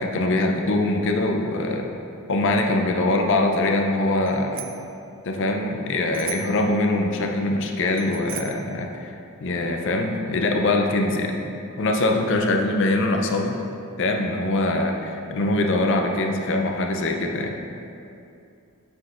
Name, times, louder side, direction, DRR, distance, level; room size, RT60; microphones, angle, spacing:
voice 1, 0.0-1.9 2.3-4.7 5.2-9.2 9.4-11.4 11.8-13.6 14.0-17.6, left 2 dB, 60° left, 3 dB, 0.5 m, -23 dB
Bicycle bell, 4.2-4.9 6.1-6.7 7.9-8.7, right 11 dB, 55° right, 0.3 m, -37 dB
7.8 x 5.9 x 2.5 m, 2.6 s
head